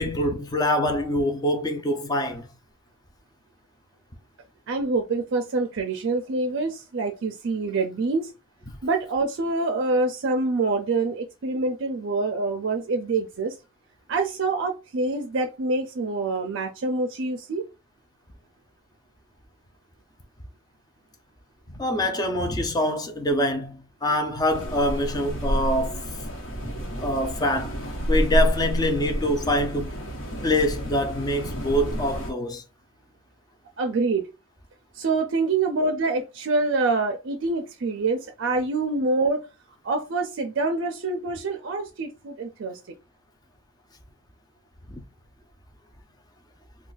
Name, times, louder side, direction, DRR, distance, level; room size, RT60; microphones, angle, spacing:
voice 1, 0.0-2.5 21.7-26.0 27.0-27.8 28.1-30.0 30.4-32.6 44.9-45.0, left 1 dB, 20° left, 0.5 m, -25 dB
voice 2, 4.7-8.3 8.8-13.6 14.1-17.6 33.8-34.3 34.9-39.5 39.8-42.8, right 3 dB, 60° right, 0.4 m, -26 dB
sound 1, 24.5-32.3, equal, 65° left, 1.1 m, -29 dB
2.4 x 2.3 x 3.8 m
head